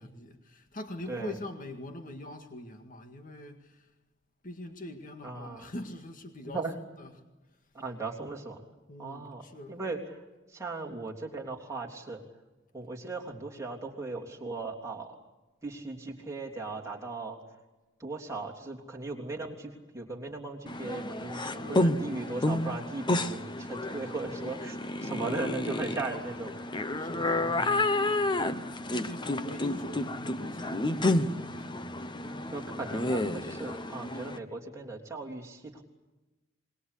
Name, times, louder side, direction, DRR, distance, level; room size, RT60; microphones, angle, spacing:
voice 1, 0.0-3.8 4.4-7.1 8.9-9.8 21.6-21.9 25.0-25.4 27.0-27.7 28.9-31.7, left 1 dB, 40° left, 6 dB, 1.9 m, -43 dB
voice 2, 1.1-1.4 5.2-5.7 6.4-6.8 7.7-8.6 9.0-10.2 10.5-12.2 12.7-15.2 15.6-17.4 18.0-26.5 27.4-27.8 32.5-35.8, right 3 dB, 15° right, -1 dB, 3.3 m, -38 dB
sound 1, 20.7-34.4, left 2 dB, 25° left, 0.9 m, -30 dB
26.5 x 21.5 x 8.4 m, 1.1 s
head